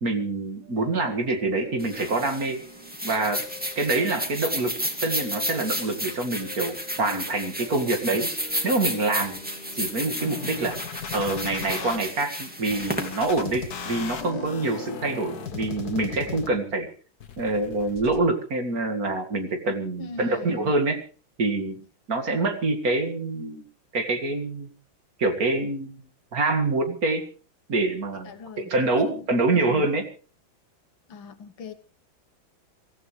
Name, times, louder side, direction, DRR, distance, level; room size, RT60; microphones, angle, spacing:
voice 1, 0.0-2.6 3.0-3.4 3.8-4.8 5.0-8.3 8.6-9.4 9.8-10.8 11.1-16.9 17.4-21.0 21.4-21.8 22.1-23.6 23.9-24.7 25.2-26.0 26.3-27.3 27.7-30.1, right 2 dB, 45° right, 2.4 m, -26 dB
sound 1, 0.6-10.8, left 2 dB, 25° right, 5.0 m, -46 dB
sound 2, 1.8-14.2, equal, 5° right, 2.2 m, -33 dB
sound 3, 10.2-12.0 12.7-16.7 17.2-18.2, left 6 dB, 50° left, 1.7 m, -36 dB
voice 2, 20.0-20.7 28.3-28.7 29.0-29.3 29.5-29.9 31.1-31.7, left 5 dB, 70° left, 2.1 m, -38 dB
24.5 x 15.5 x 3.3 m
omnidirectional pair, 2.3 m